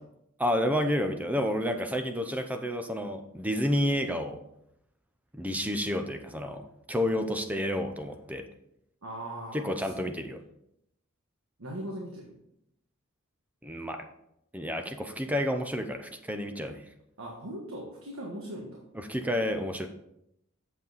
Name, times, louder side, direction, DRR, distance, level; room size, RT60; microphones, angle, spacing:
voice 1, 0.4-4.4 5.3-8.4 9.5-10.4 13.6-14.0 14.5-16.8 18.9-19.9, equal, 5° right, 6 dB, 0.7 m, -30 dB
voice 2, 7.1-7.4 9.0-10.1 11.6-12.3 17.2-18.8, right 1 dB, 70° right, -1 dB, 1.5 m, -40 dB
8.1 x 7.2 x 4.1 m, 0.78 s
head